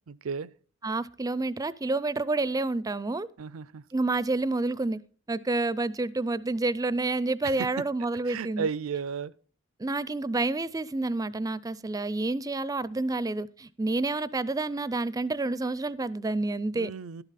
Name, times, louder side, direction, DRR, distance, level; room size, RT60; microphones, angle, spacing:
voice 1, 0.1-0.5 3.4-3.8 7.4-7.9 8.3-9.3 16.7-17.2, right 6 dB, 75° right, 0.5 m, -34 dB
voice 2, 0.8-3.3 3.9-5.0 5.3-8.7 9.8-16.9, right 2 dB, 15° right, 0.4 m, -29 dB
12.0 x 11.0 x 4.1 m
head